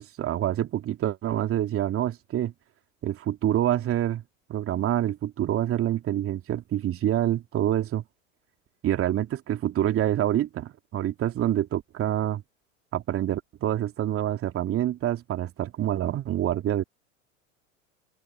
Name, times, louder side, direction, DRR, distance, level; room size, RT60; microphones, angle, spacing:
voice 1, 0.0-2.5 3.0-4.2 4.5-8.0 8.8-12.4 12.9-16.8, right 12 dB, 35° right, 3.0 m, -26 dB
open air
hypercardioid pair, 90°, 39 cm